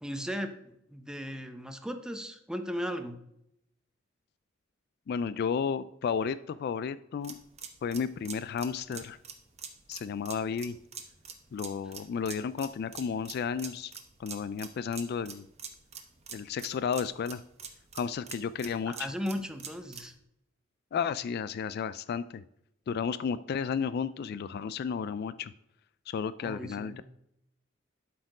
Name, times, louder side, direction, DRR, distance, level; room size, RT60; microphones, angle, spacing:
voice 1, 0.0-3.2 18.9-20.1 26.4-27.0, equal, 5° right, 7 dB, 0.7 m, -36 dB
voice 2, 5.1-7.4 7.8-9.2 9.9-10.8 11.5-13.9 14.2-15.5 16.3-17.4 17.9-19.1 20.9-22.4 22.9-25.5 26.1-27.0, left 6 dB, 50° left, 15 dB, 0.3 m, -33 dB
sound 1, 7.2-20.1, right 7 dB, 35° right, 1.0 m, -45 dB
12.0 x 4.3 x 4.9 m, 0.78 s
head